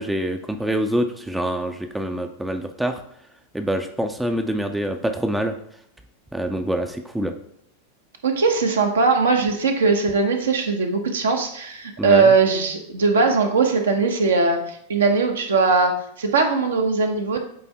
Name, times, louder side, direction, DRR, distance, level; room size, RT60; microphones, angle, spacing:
voice 1, 0.0-3.0 3.5-5.6 6.3-7.3 12.0-12.3, right 1 dB, 5° right, 6 dB, 0.5 m, -25 dB
voice 2, 8.2-17.4, right 4 dB, 65° right, 4 dB, 1.1 m, -20 dB
8.4 x 3.5 x 4.2 m, 0.70 s
figure-of-eight pair, 90°, 0 cm